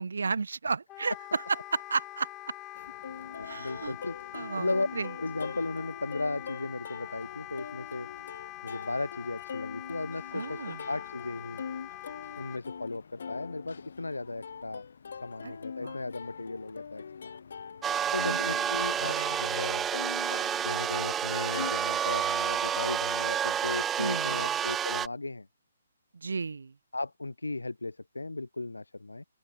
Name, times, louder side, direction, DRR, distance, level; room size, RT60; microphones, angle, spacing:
voice 1, 0.0-2.3 3.4-3.9 4.3-5.1 10.3-10.8 15.4-15.6 15.8-16.0 18.3-18.4 19.0-19.4 24.0-24.5 26.1-26.7, right 4 dB, 60° right, 0.9 m, -33 dB
Wind instrument woodwind instrument, 0.9-12.6, left 17 dB, 15° left, 3.6 m, -44 dB
Plucked string instrument, 2.8-21.7, left 6 dB, 50° left, 5.2 m, -43 dB
voice 2, 3.3-4.2 4.6-4.9 5.2-8.1 8.6-11.6 12.4-14.9 15.2-17.3 18.1-19.9 20.6-25.5 26.9-29.2, left 2 dB, 75° left, 1.5 m, -36 dB
sound 1, 17.8-25.1, right 9 dB, 10° right, 0.3 m, -29 dB
open air
figure-of-eight pair, 135°, 0 cm